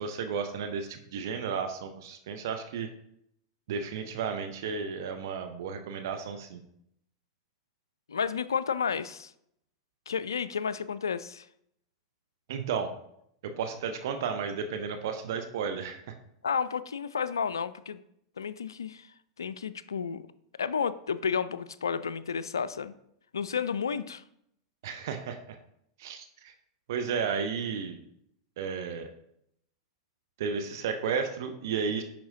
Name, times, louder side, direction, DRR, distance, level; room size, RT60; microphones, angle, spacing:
voice 1, 0.0-2.9 3.7-6.6 12.5-12.9 13.4-16.1 24.8-25.6 26.0-26.5 26.9-28.0 28.6-29.1 30.4-32.0, right 6 dB, 55° right, 6 dB, 0.6 m, -33 dB
voice 2, 8.1-9.3 10.1-11.5 16.4-18.0 18.4-19.1 19.4-20.3 20.6-22.9 23.3-24.2, left 6 dB, 75° left, 15 dB, 0.3 m, -31 dB
10.0 x 4.4 x 2.7 m, 0.74 s
figure-of-eight pair, 90°, 2 cm